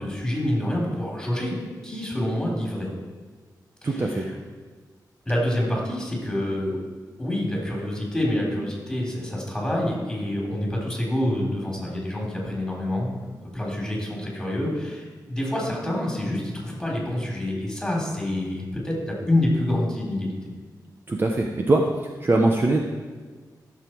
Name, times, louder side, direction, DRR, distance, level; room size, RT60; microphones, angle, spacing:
voice 1, 0.0-1.6 1.8-2.9 3.8-4.3 5.3-6.8 7.2-13.1 13.5-20.5, left 1 dB, 5° left, -2 dB, 3.5 m, -27 dB
voice 2, 3.8-4.2 21.1-21.9 22.2-22.8, right 2 dB, 30° right, 1 dB, 0.8 m, -21 dB
15.0 x 7.1 x 4.6 m, 1.5 s
wide cardioid pair, 115°, 7 cm